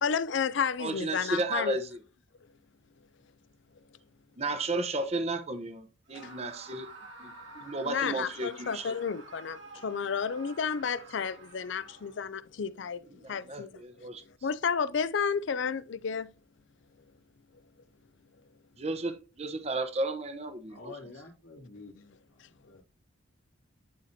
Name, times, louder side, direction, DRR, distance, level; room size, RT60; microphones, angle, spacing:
voice 1, 0.0-1.8 6.1-6.3 7.9-13.0 13.3-14.1 14.4-16.3 22.0-22.1, left 6 dB, 65° left, 0.4 m, -32 dB
voice 2, 0.8-2.0 4.4-6.9 7.2-8.9 13.1-14.2 18.8-20.9, right 2 dB, 30° right, 0.8 m, -33 dB
Screaming, 6.1-12.3, right 3 dB, 65° right, 2.3 m, -50 dB
voice 3, 20.7-21.9 22.4-22.8, left 3 dB, 90° left, 2.4 m, -48 dB
11.0 x 4.3 x 2.7 m
head